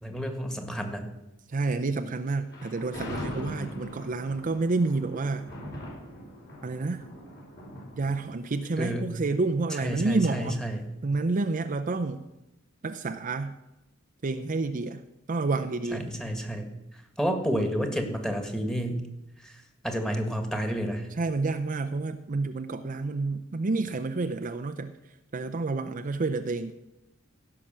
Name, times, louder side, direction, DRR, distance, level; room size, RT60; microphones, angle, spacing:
voice 1, 0.0-1.1 8.8-9.1 9.7-10.8 15.9-16.7 17.2-19.0 19.4-21.1, equal, 5° left, 5 dB, 1.6 m, -30 dB
voice 2, 1.5-5.5 6.6-7.0 8.0-10.6 11.0-12.3 12.8-13.5 14.2-15.0 15.3-16.1 21.2-24.9 25.3-26.7, right 3 dB, 40° right, 8 dB, 0.5 m, -29 dB
Thunder, 2.5-9.7, equal, 55° left, 5.3 m, -41 dB
16.0 x 5.9 x 7.4 m, 0.94 s
head